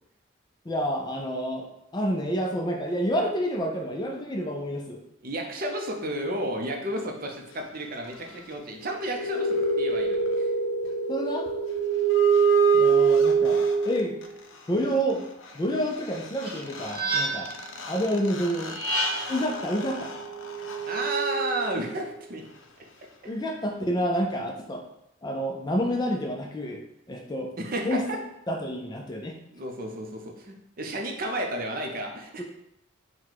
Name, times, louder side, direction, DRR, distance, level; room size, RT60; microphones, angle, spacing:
voice 1, 0.7-5.0 11.1-11.5 12.7-14.2 14.7-15.2 15.5-17.5 17.9-18.8 19.3-20.1 23.3-24.9 25.2-26.8 27.1-27.5 27.8-28.0 28.5-29.4 32.4-32.5, equal, 20° left, 2 dB, 0.4 m, -29 dB
voice 2, 5.2-10.5 20.9-22.4 27.6-28.2 29.5-32.4, right 1 dB, 45° right, 2 dB, 0.5 m, -32 dB
sound 1, 8.9-14.3 16.1-16.2 16.4-21.9, right 5 dB, 70° left, 0.5 m, -25 dB
sound 2, 16.4-17.6 18.6-19.5, right 2 dB, 25° right, 0.9 m, -29 dB
4.0 x 2.2 x 4.5 m, 0.80 s
head